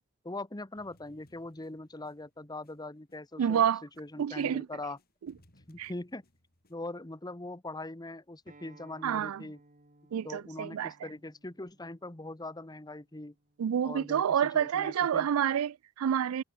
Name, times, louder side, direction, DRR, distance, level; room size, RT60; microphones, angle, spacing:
voice 1, 0.2-3.6 4.0-5.0 5.7-6.2 6.7-9.6 10.2-13.3 13.8-15.3, left 2 dB, 20° left, 1.2 m, -41 dB
sound 1, 0.7-4.5 4.8-6.7, left 1 dB, 45° left, 7.6 m, -65 dB
voice 2, 3.4-3.8 4.2-4.7 5.8-5.9 9.0-9.4 10.1-10.9 13.6-16.4, right 9 dB, 85° right, 0.4 m, -28 dB
Acoustic guitar, 8.5-13.7, right 2 dB, 40° right, 3.2 m, -61 dB
head